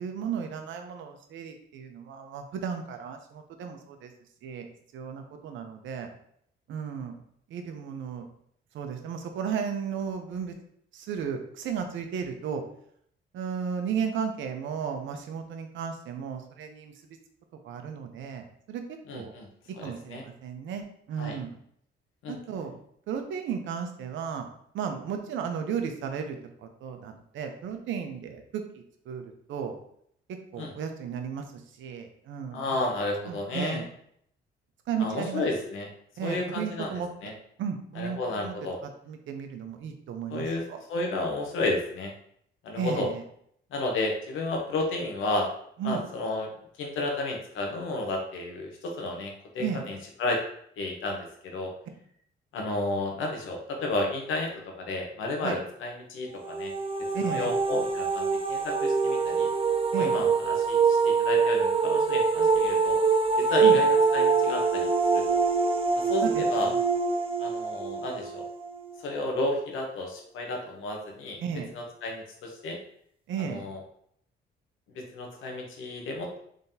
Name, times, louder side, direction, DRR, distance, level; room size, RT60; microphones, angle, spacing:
voice 1, 0.0-4.1 4.4-4.7 4.9-6.1 6.7-7.2 7.5-8.3 8.7-10.5 10.9-12.6 13.3-16.9 17.6-19.3 19.8-21.5 22.3-22.7 23.1-24.5 24.7-26.4 26.6-28.6 29.1-29.2 29.5-29.7 30.5-32.8 33.3-33.8 34.9-35.4 36.2-37.1 37.6-38.2 38.4-38.5 39.1-40.8 42.8-43.2 45.8-46.0 49.6-49.8 55.4-55.6 57.1-57.5 59.9-60.3 63.6-63.8 66.2-66.8 71.4-71.7 73.3-73.6, right 7 dB, 75° right, 6 dB, 0.7 m, -34 dB
voice 2, 19.1-19.5 19.8-20.2 21.2-21.4 22.2-22.3 30.6-30.7 32.5-33.8 35.0-35.9 36.2-37.3 38.0-38.8 40.3-42.1 42.6-43.1 43.7-45.5 45.8-46.5 46.8-50.4 50.8-51.7 52.5-54.5 54.8-56.7 57.2-59.5 60.0-63.0 63.4-65.4 66.0-66.7 67.4-68.5 69.0-71.4 71.7-72.8 73.4-73.8 74.9-76.4, left 2 dB, 80° left, 1 dB, 0.9 m, -32 dB
sound 1, 56.3-69.2, right 4 dB, 25° right, 0.5 m, -24 dB
3.7 x 3.4 x 2.7 m, 0.68 s
cardioid pair, 90°, 20 cm